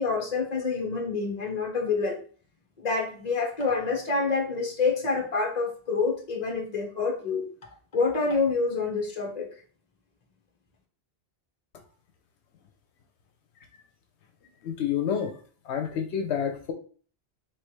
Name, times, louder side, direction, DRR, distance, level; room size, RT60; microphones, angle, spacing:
voice 1, 0.0-2.2 2.8-7.4 7.9-9.5, left 4 dB, 40° left, 1 dB, 1.2 m, -27 dB
voice 2, 14.6-15.3 15.7-16.7, left 8 dB, 85° left, 5 dB, 1.0 m, -28 dB
4.4 x 3.3 x 3.1 m, 0.42 s
omnidirectional pair, 1.1 m